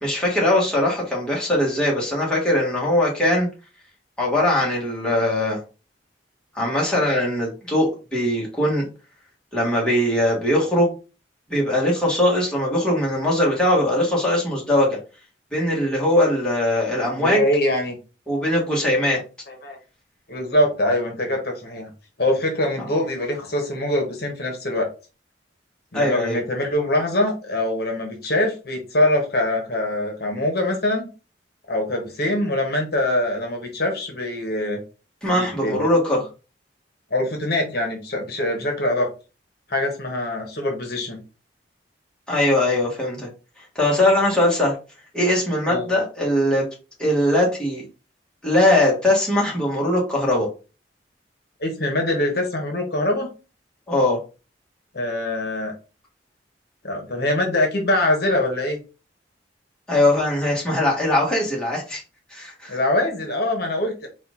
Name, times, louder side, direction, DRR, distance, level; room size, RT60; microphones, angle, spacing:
voice 1, 0.0-3.5 4.2-5.6 6.5-8.8 9.5-10.9 11.5-15.0 15.5-17.4 18.3-19.2 22.8-22.9 25.9-26.4 35.2-36.2 42.3-43.3 43.7-44.7 45.1-46.6 47.0-47.8 48.4-50.5 53.9-54.2 59.9-62.0 62.3-62.8, left 1 dB, 5° left, -5 dB, 1.6 m, -20 dB
voice 2, 17.2-18.0 19.5-19.8 20.3-21.9 22.2-24.9 25.9-31.1 31.7-34.8 35.3-35.9 37.1-39.1 39.7-41.2 45.7-45.9 51.6-53.3 54.9-55.7 56.8-58.8 62.7-64.1, left 1 dB, 60° left, 2 dB, 1.1 m, -23 dB
4.3 x 2.6 x 3.7 m, 0.32 s
head